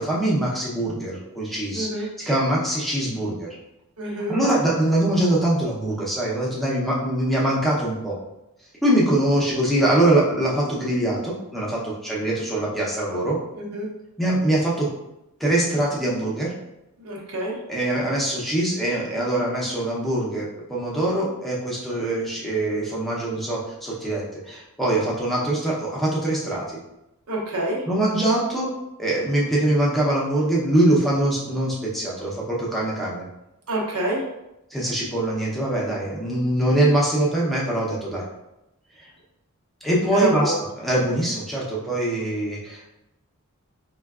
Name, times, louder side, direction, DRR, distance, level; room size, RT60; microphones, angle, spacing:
voice 1, 0.0-3.5 4.3-8.1 8.8-13.4 14.2-14.9 15.4-16.5 17.7-26.8 27.9-28.7 29.0-33.3 34.7-38.2 39.0-39.1 39.8-42.9, right 1 dB, ahead, -5 dB, 0.6 m, -23 dB
voice 2, 1.7-2.1 4.0-4.3 13.6-13.9 17.0-17.6 27.3-27.8 33.7-34.2 40.1-40.6, right 1 dB, 85° right, -2 dB, 0.8 m, -26 dB
4.3 x 2.2 x 2.3 m, 0.89 s
head